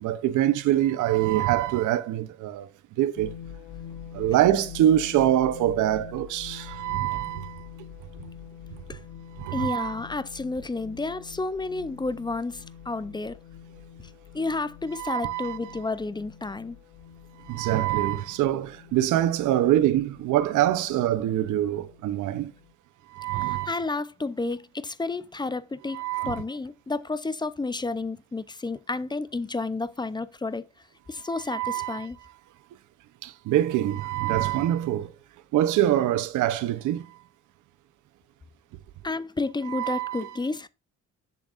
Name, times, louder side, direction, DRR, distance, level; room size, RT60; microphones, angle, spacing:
voice 1, 0.0-2.7 3.0-3.3 4.1-7.6 9.4-9.9 14.9-15.8 17.5-22.5 23.1-23.8 25.9-26.4 31.5-32.1 33.2-35.1 35.5-37.1 39.7-40.3, right 12 dB, 85° right, 0.7 m, -24 dB
sound 1, 3.2-22.7, left 8 dB, 75° left, 1.0 m, -46 dB
voice 2, 9.5-13.4 14.3-16.8 23.4-30.7 31.1-32.2 39.0-40.7, left 3 dB, 15° left, 0.5 m, -31 dB
7.7 x 7.0 x 2.4 m
cardioid pair, 90°, 30 cm